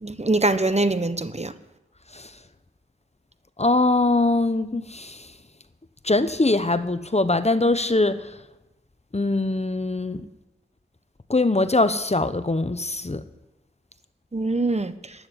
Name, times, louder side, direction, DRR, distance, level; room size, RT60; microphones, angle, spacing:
voice 1, 0.0-1.5 14.3-14.9, right 2 dB, 30° right, 1.1 m, -23 dB
voice 2, 3.6-5.3 6.0-8.4 9.1-10.2 11.3-13.2, left 2 dB, 30° left, 0.9 m, -22 dB
12.5 x 9.0 x 9.9 m
wide cardioid pair, 45°, 21 cm